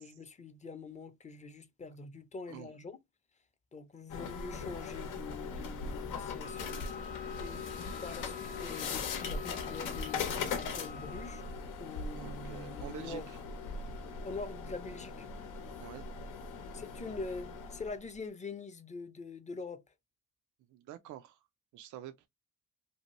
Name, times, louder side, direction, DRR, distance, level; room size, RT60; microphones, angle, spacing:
voice 1, 0.0-3.0 3.7-6.8 7.4-11.4 11.8-13.3 14.2-15.3 16.7-19.8, left 4 dB, 25° left, 0.5 m, -44 dB
sound 1, 4.1-18.0, left 5 dB, 85° left, 0.8 m, -40 dB
Wind instrument woodwind instrument, 6.4-11.6, left 4 dB, 25° right, 0.5 m, -49 dB
voice 2, 12.2-13.4 15.8-16.0 20.7-21.4 21.7-22.3, right 12 dB, 75° right, 0.5 m, -47 dB
2.7 x 2.5 x 2.9 m
cardioid pair, 90°, 30 cm